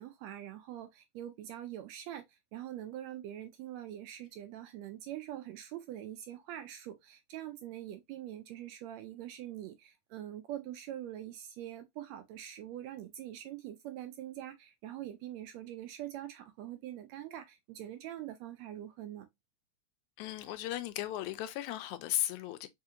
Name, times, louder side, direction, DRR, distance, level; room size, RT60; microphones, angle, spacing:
voice 1, 0.0-19.3, right 12 dB, 80° right, 1.6 m, -44 dB
voice 2, 20.2-22.7, left 13 dB, 85° left, 2.0 m, -36 dB
4.8 x 2.6 x 2.7 m
omnidirectional pair, 3.4 m